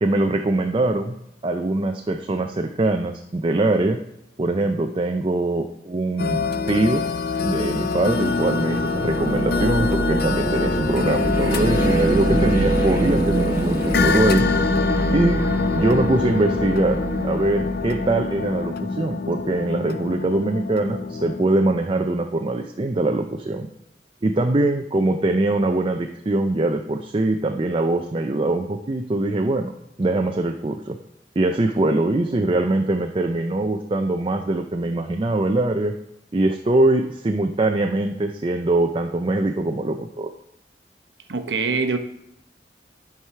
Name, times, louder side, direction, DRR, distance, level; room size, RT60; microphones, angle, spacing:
voice 1, 0.0-1.2 1.4-4.0 4.4-7.0 7.4-14.4 15.1-15.4 15.7-23.7 24.2-29.7 30.0-31.0 31.4-35.9 36.3-40.3, right 2 dB, 30° right, 4 dB, 0.5 m, -22 dB
sound 1, 6.2-21.4, left 4 dB, 60° left, 0.5 m, -25 dB
sound 2, 8.5-18.7, right 2 dB, 15° right, 1.4 m, -25 dB
voice 2, 41.3-42.0, right 4 dB, 90° right, 7 dB, 1.0 m, -23 dB
11.0 x 4.8 x 5.7 m, 0.83 s
head